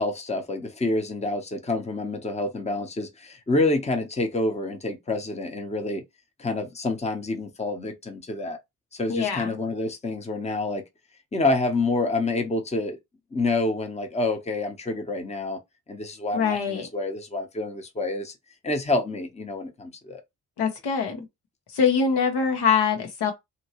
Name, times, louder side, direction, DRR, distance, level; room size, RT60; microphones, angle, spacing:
voice 1, 0.0-6.0 6.4-8.6 8.9-10.8 11.3-13.0 13.3-15.6 15.9-18.3 18.6-20.2, left 2 dB, 15° left, 0.8 m, -27 dB
voice 2, 9.1-9.5 16.3-16.9 20.6-21.2 21.7-23.3, left 6 dB, 90° left, 1.1 m, -23 dB
2.8 x 2.8 x 2.9 m
cardioid pair, 90°, 39 cm